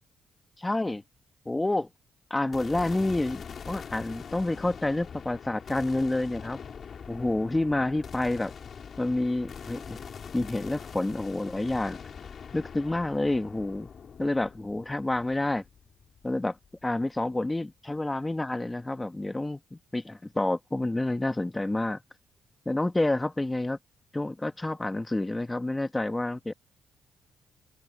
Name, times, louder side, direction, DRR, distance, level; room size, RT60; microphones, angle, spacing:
voice 1, 0.6-1.0 1.5-1.9 2.3-6.6 7.1-8.5 9.0-10.0 10.3-12.0 12.5-13.9 14.2-15.6 16.2-16.6 16.8-22.0 22.7-23.8 24.1-26.5, left 2 dB, 15° left, 2.0 m, -29 dB
sound 1, 2.5-16.8, left 6 dB, 50° left, 4.8 m, -43 dB
cardioid pair, 90°, 0 cm